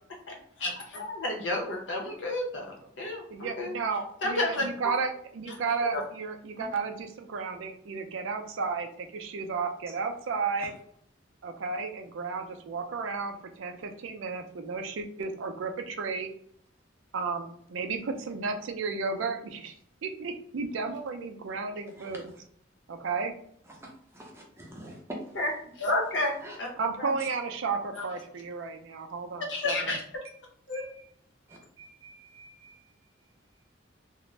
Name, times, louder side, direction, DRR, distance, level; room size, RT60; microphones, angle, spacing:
voice 1, 0.3-3.7 4.2-4.9 5.9-6.0 25.3-25.5 25.8-26.7 27.0-27.1 28.0-28.1 29.5-30.0 30.7-30.8, left 2 dB, 70° left, 1 dB, 0.7 m, -31 dB
voice 2, 3.3-10.7 11.4-16.3 17.1-19.7 20.0-22.3 22.9-23.3 26.8-30.0, right 4 dB, 80° right, 5 dB, 0.4 m, -33 dB
voice 3, 24.2-25.2 30.7-31.0 31.8-32.7, right 1 dB, 15° right, 0 dB, 0.5 m, -45 dB
2.5 x 2.1 x 3.1 m, 0.65 s
head